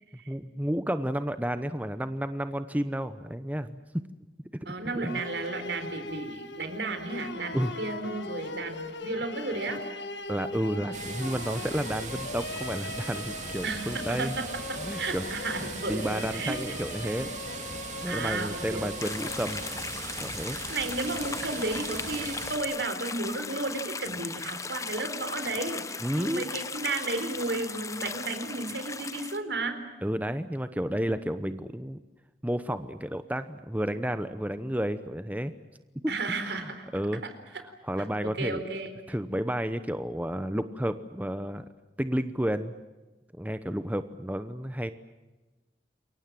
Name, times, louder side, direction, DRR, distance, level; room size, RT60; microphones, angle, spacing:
voice 1, 0.3-4.0 5.0-5.2 7.5-7.7 10.3-14.3 14.8-15.2 15.9-17.3 18.0-19.7 20.2-20.6 26.0-26.5 30.0-32.0 32.4-35.5 36.0-37.2 37.9-38.6 39.1-41.6 42.0-42.7 43.4-44.9, equal, 10° right, 11 dB, 0.9 m, -31 dB
voice 2, 4.7-9.8 13.6-16.6 17.0-17.3 18.1-18.9 20.7-29.8 36.1-36.9 38.2-38.9, right 3 dB, 85° right, 8 dB, 4.1 m, -33 dB
sound 1, 5.1-20.1, left 2 dB, 90° left, 1.7 m, -40 dB
sound 2, 10.9-22.6, right 4 dB, 45° right, 3.4 m, -39 dB
sound 3, 19.0-29.4, left 4 dB, 20° left, 1.0 m, -37 dB
28.0 x 23.0 x 7.6 m, 1.2 s
head